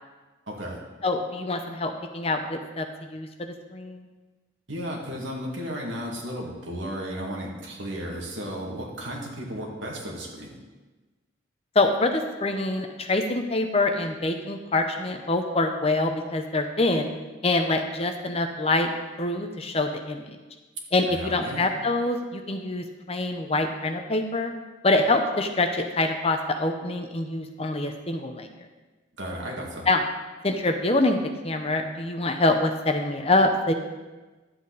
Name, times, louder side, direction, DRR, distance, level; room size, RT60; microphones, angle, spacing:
voice 1, 0.5-0.8 4.7-10.6 21.1-21.7 29.2-29.9, equal, 75° right, -2 dB, 2.1 m, -34 dB
voice 2, 1.0-4.1 11.7-17.1 17.4-18.9 19.2-20.4 20.9-24.5 24.8-28.5 29.9-30.0 30.4-33.7, left 2 dB, 30° left, 6 dB, 0.7 m, -25 dB
11.5 x 7.9 x 4.0 m, 1.2 s
head